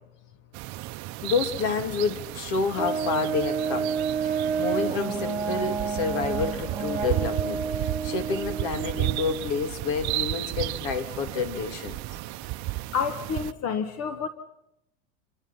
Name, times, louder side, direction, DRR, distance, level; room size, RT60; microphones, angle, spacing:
sound 1, 0.5-13.5, right 18 dB, 40° right, 0.8 m, -33 dB
voice 1, 1.2-4.0 4.2-4.3 4.6-12.0, left 5 dB, 55° left, 2.8 m, -29 dB
sound 2, 2.2-7.2, left 1 dB, 10° left, 7.8 m, -50 dB
Brass instrument, 2.7-9.5, right 6 dB, 15° right, 4.7 m, -30 dB
voice 2, 12.9-14.3, left 6 dB, 35° left, 1.5 m, -29 dB
28.5 x 23.5 x 5.6 m
hypercardioid pair, 100°, 41 cm